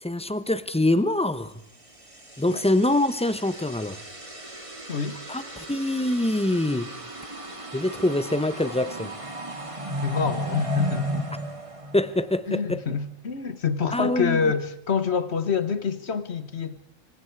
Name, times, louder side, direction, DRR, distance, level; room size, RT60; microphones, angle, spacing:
voice 1, 0.0-1.5 2.4-4.0 5.3-6.9 7.7-9.1 11.9-12.8 13.9-14.4, left 1 dB, 5° left, 0.8 m, -24 dB
sound 1, 1.9-12.6, right 1 dB, 25° right, 2.1 m, -35 dB
voice 2, 4.9-5.2 10.0-11.3 12.5-16.8, left 5 dB, 55° left, 1.5 m, -26 dB
26.0 x 24.5 x 4.7 m
omnidirectional pair, 1.3 m